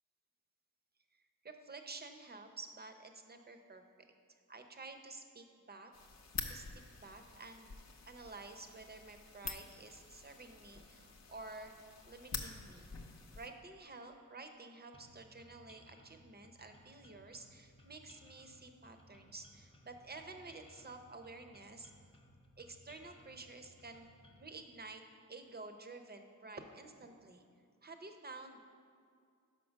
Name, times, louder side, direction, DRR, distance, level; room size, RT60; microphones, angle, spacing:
voice 1, 1.1-3.8 4.5-5.9 6.5-6.7 7.0-7.7 8.0-11.7 12.1-12.9 13.4-21.9 22.6-24.1 24.4-25.0 25.3-27.4 27.8-28.6, right 3 dB, 30° right, 6 dB, 0.7 m, -51 dB
sound 1, 5.9-13.5, left 4 dB, 55° left, 0.8 m, -47 dB
sound 2, 14.9-24.5, left 1 dB, 15° left, 0.7 m, -62 dB
5.4 x 5.2 x 6.2 m, 2.3 s
cardioid pair, 75°, 32 cm